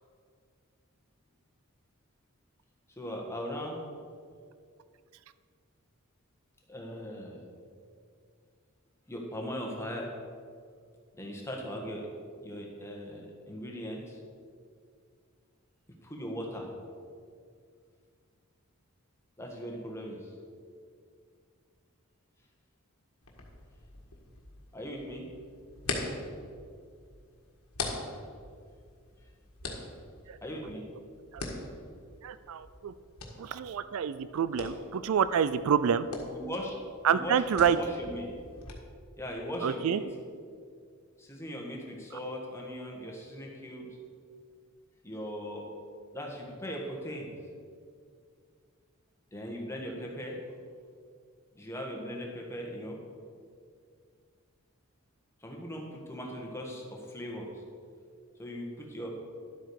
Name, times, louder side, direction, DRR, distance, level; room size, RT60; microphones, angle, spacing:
voice 1, 3.0-3.8 6.7-7.4 9.1-10.1 11.2-12.1 12.4-14.2 16.0-16.7 19.4-20.3 24.7-25.3 30.4-30.9 34.6-34.7 36.3-36.7 37.1-38.3 39.2-40.0 41.2-43.9 45.0-45.7 46.1-47.3 49.3-50.4 51.5-53.0 55.4-57.5 58.4-59.1, equal, 10° left, -1 dB, 1.5 m, -39 dB
sound 1, 23.2-38.7, left 3 dB, 85° left, 1.6 m, -43 dB
voice 2, 32.2-32.9 33.4-36.1 37.0-37.8 39.6-40.0, right 7 dB, 70° right, 14 dB, 0.4 m, -27 dB
11.5 x 7.9 x 4.7 m, 2.2 s
head